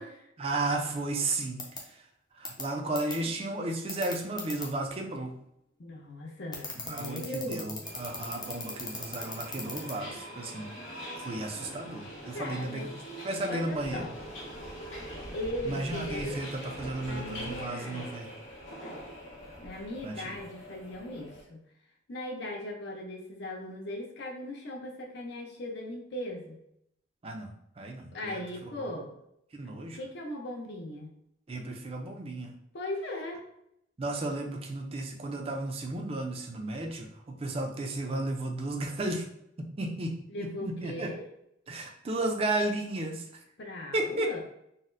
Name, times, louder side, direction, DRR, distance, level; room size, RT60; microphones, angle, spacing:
voice 1, 0.4-1.6 2.4-5.3 6.8-10.7 11.2-12.9 13.2-14.0 15.7-16.5 16.8-18.3 20.0-20.3 27.2-28.4 28.8-28.9 29.5-30.0 31.5-32.5 34.0-37.1 37.4-39.3 39.6-41.1 41.7-43.2 43.9-44.3, right 2 dB, 30° right, 2 dB, 0.4 m, -33 dB
sound 1, 1.6-1.8 2.4-2.6 2.9-3.1 3.9-4.6 6.5-9.9, left 4 dB, 20° left, 0.5 m, -37 dB
voice 2, 5.8-7.8 12.3-12.9 13.5-14.1 15.3-16.7 17.0-18.1 18.8-19.0 19.6-21.6 22.1-26.6 28.1-29.2 29.7-31.2 32.7-33.5 40.3-41.3 43.6-44.4, left 1 dB, 60° left, 1 dB, 0.6 m, -38 dB
Subway metro underground, 7.8-21.4, equal, 85° left, 1.1 m, -43 dB
4.0 x 2.1 x 2.5 m, 0.76 s
head